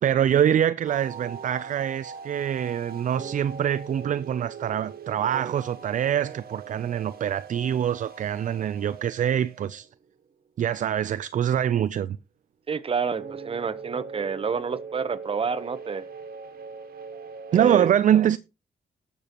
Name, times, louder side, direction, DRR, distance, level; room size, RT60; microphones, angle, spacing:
voice 1, 0.0-9.9 10.6-12.2 17.5-18.4, right 10 dB, 55° right, 0.4 m, -24 dB
sound 1, 0.9-10.0 13.2-17.7, right 6 dB, 75° right, 1.5 m, -41 dB
voice 2, 12.7-16.1 17.5-18.2, right 5 dB, 35° right, 0.9 m, -29 dB
19.5 x 6.8 x 3.0 m
cardioid pair, 105°, 16 cm